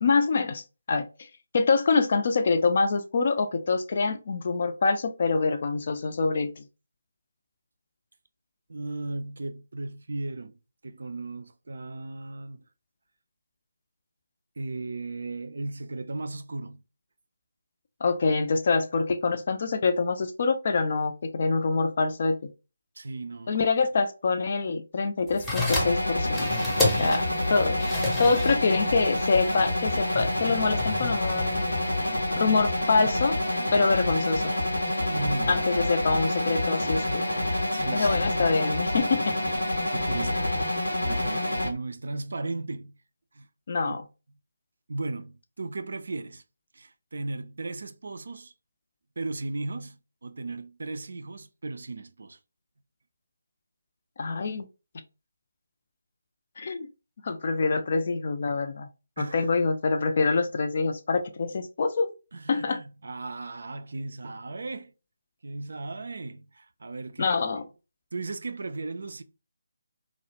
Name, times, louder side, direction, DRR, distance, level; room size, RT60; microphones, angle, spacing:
voice 1, 0.0-0.6 0.9-1.0 1.5-6.6 18.0-22.5 23.5-26.5 27.0-27.2 27.5-27.8 28.2-31.6 32.4-33.4 33.7-34.5 35.5-37.0 37.9-39.3 43.7-44.0 54.2-54.6 56.6-56.9 57.2-58.9 59.2-62.1 62.5-62.8 67.2-67.6, left 4 dB, 45° left, 0.4 m, -25 dB
voice 2, 8.7-10.5 10.8-12.6 14.6-16.8 23.0-23.6 26.8-27.4 35.0-35.8 37.7-38.2 39.5-43.0 43.3-43.5 43.9-44.0 44.9-46.4 46.7-48.5 49.2-52.4 59.2-59.5 62.3-64.9 65.4-67.3 68.1-69.2, right 2 dB, 60° right, 0.3 m, -36 dB
sound 1, 25.3-32.1, left 2 dB, 10° left, 0.6 m, -32 dB
sound 2, 25.7-41.7, left 1 dB, 80° left, 0.7 m, -27 dB
2.3 x 2.0 x 2.8 m
figure-of-eight pair, 150°, 0 cm